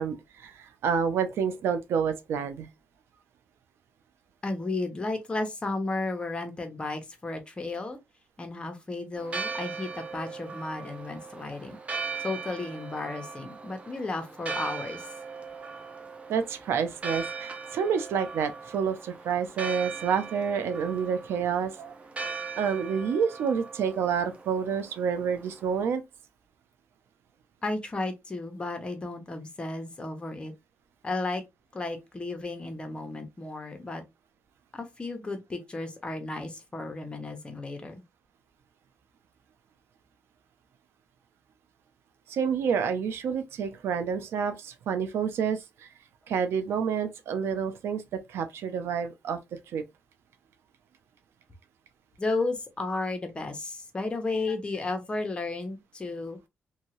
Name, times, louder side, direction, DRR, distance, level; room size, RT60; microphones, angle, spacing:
voice 1, 0.0-2.7 16.3-22.0 22.6-26.0 42.3-45.9 46.3-48.0 48.3-49.4 49.7-49.8, right 7 dB, 85° right, 0.6 m, -28 dB
voice 2, 4.4-8.0 8.4-11.8 12.2-15.0 27.6-30.5 31.0-31.4 31.7-34.0 34.7-38.0 52.2-56.4, left 2 dB, 25° left, 0.9 m, -33 dB
Church bell, 9.2-25.8, right 4 dB, 30° right, 0.7 m, -39 dB
2.8 x 2.7 x 3.0 m
cardioid pair, 105°, 4 cm